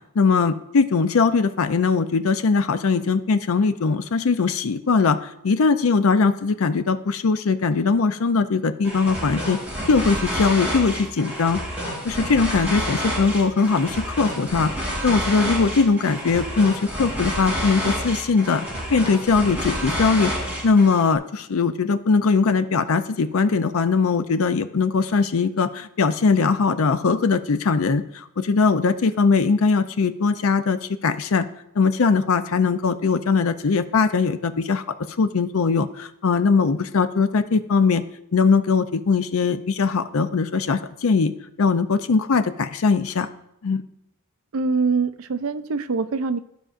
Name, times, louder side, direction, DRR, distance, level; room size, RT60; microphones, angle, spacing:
voice 1, 0.2-5.2 5.4-9.6 9.9-11.6 12.0-14.7 15.0-18.7 18.9-20.3 20.6-31.4 31.8-34.8 35.2-38.0 38.3-41.3 41.6-43.3 43.6-43.8, left 4 dB, 75° left, 12 dB, 0.5 m, -20 dB
sound 1, 8.8-21.1, equal, 5° right, 2.8 m, -29 dB
voice 2, 44.5-46.4, right 4 dB, 75° right, 12 dB, 0.5 m, -24 dB
14.5 x 5.0 x 2.5 m, 0.82 s
head